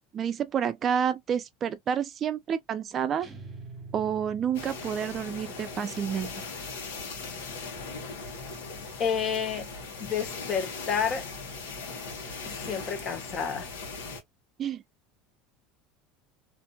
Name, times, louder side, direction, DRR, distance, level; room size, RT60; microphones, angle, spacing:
voice 1, 0.1-3.3 3.9-6.3 14.6-14.8, right 8 dB, 40° right, 0.4 m, -29 dB
sound 1, 3.2-5.3, right 3 dB, 25° right, 1.0 m, -45 dB
sound 2, 4.5-14.2, left 4 dB, 90° left, 1.1 m, -39 dB
voice 2, 9.0-9.7 10.0-11.3 12.4-13.7, left 7 dB, 40° left, 1.0 m, -30 dB
2.6 x 2.5 x 2.2 m
supercardioid pair, 110°, 0 cm